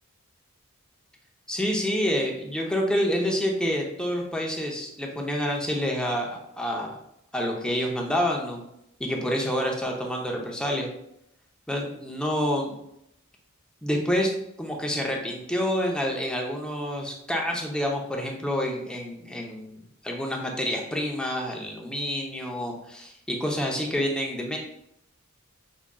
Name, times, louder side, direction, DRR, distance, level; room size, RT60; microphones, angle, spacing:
voice 1, 1.5-7.0 7.3-8.6 9.0-10.9 11.7-12.8 13.8-14.3 14.6-24.6, equal, 5° left, 0 dB, 0.6 m, -28 dB
5.2 x 3.6 x 2.2 m, 0.78 s
head